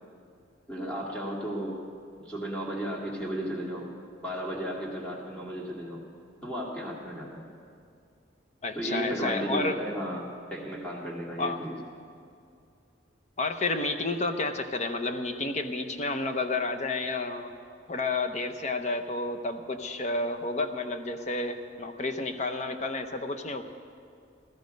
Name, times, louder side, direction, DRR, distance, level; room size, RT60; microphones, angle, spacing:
voice 1, 0.7-1.8 2.2-3.9 4.2-6.0 6.4-7.4 8.7-11.7, equal, 5° left, -3 dB, 2.1 m, -34 dB
voice 2, 8.6-9.8 11.4-11.6 13.4-17.5 17.9-23.6, left 2 dB, 35° left, 7 dB, 0.8 m, -30 dB
16.5 x 13.0 x 5.3 m, 2.4 s
head